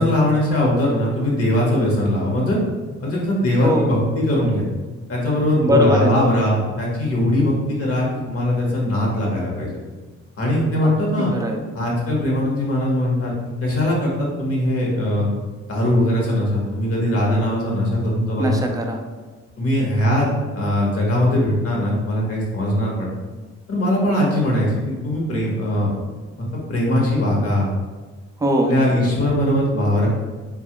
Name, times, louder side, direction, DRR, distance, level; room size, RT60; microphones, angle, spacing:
voice 1, 0.0-2.6 3.0-4.6 5.1-9.7 10.4-11.3 11.7-13.3 13.6-15.3 15.7-18.6 19.6-23.1 23.7-25.9 26.4-27.7 28.7-30.1, left 1 dB, 50° left, -3 dB, 1.0 m, -20 dB
voice 2, 3.6-3.9 5.6-6.2 10.8-10.9 11.3-11.6 18.4-19.0 28.4-28.8, equal, 10° right, 2 dB, 0.4 m, -20 dB
3.0 x 2.4 x 2.9 m, 1.3 s
cardioid pair, 90°, 30 cm